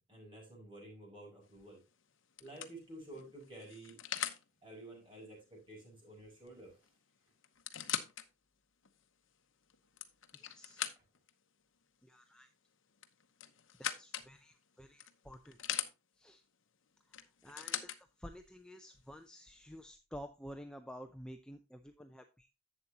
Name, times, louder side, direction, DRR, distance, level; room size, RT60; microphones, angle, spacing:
voice 1, 0.0-1.8 2.4-4.0 4.6-6.8, right 1 dB, 25° right, -2 dB, 6.0 m, -51 dB
sound 1, 1.5-1.8 2.4-4.4 6.5-6.6 6.8-6.9 7.4-8.3 8.9-9.0 9.7-11.3 13.0-14.3 15.0-15.9 17.1-18.0 18.9-19.0, left 10 dB, 70° left, 0.9 m, -41 dB
voice 2, 10.3-10.9 12.0-12.5 13.8-15.6 16.2-16.4 17.1-22.5, equal, 5° left, 5 dB, 0.5 m, -51 dB
11.0 x 8.1 x 2.8 m, 0.27 s
head